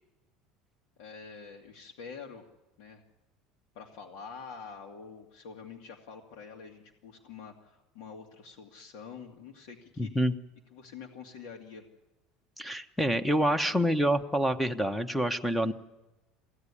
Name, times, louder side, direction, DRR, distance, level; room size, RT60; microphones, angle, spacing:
voice 1, 1.0-2.5 2.8-3.0 3.7-10.1 10.7-11.8 13.5-13.8, left 5 dB, 75° left, 1 dB, 2.2 m, -46 dB
voice 2, 10.0-10.3 12.6-15.7, equal, 5° left, 12 dB, 0.9 m, -27 dB
22.5 x 16.0 x 9.8 m, 1.1 s
cardioid pair, 145°, 0 cm